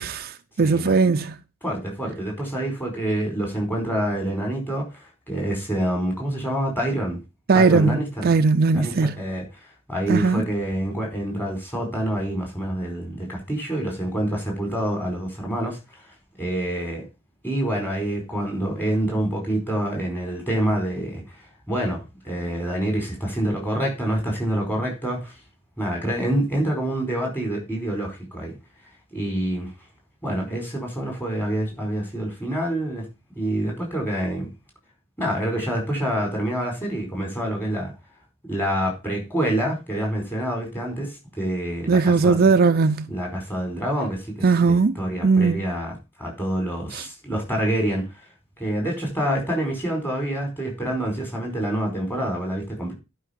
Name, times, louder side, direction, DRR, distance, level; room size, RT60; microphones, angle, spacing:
voice 1, 0.0-1.4 7.5-9.1 10.1-10.4 41.9-43.1 44.4-44.9 45.2-45.6 46.9-47.1, right 4 dB, 45° right, 0.5 m, -19 dB
voice 2, 0.6-0.9 1.6-7.2 7.5-8.3 8.7-16.0 16.4-17.0 17.4-25.3 25.8-28.6 29.1-29.7 30.2-33.1 33.3-34.5 35.2-37.9 38.5-42.4 43.1-48.2 48.6-52.9, right 1 dB, 10° left, 4.8 m, -27 dB
11.0 x 5.7 x 5.2 m
head